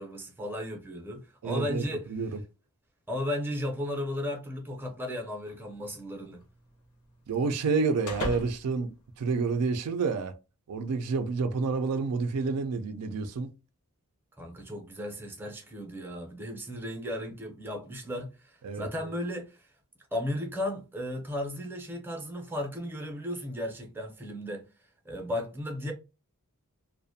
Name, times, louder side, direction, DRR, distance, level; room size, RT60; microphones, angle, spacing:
voice 1, 0.0-2.1 3.1-6.4 14.4-19.7 20.1-24.6 25.0-25.9, left 1 dB, 10° right, 0.5 m, -35 dB
voice 2, 1.4-2.4 7.3-10.3 10.7-13.5 18.6-18.9, right 4 dB, 90° right, 0.4 m, -29 dB
sound 1, 5.5-9.9, equal, 80° left, 0.7 m, -42 dB
2.4 x 2.1 x 2.6 m
head